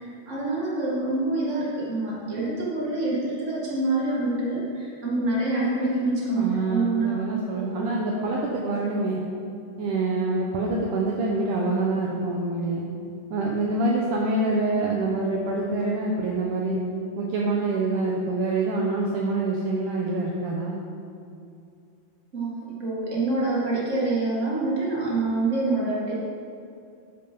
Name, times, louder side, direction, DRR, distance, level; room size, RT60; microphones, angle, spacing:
voice 1, 0.0-7.2 7.7-7.8 22.3-26.1, right 2 dB, 30° right, -6 dB, 1.4 m, -26 dB
voice 2, 6.4-9.2 9.8-12.8 13.3-16.8 17.2-20.8, right 2 dB, 80° right, -3 dB, 1.8 m, -26 dB
12.0 x 6.0 x 5.2 m, 2.5 s
omnidirectional pair, 4.7 m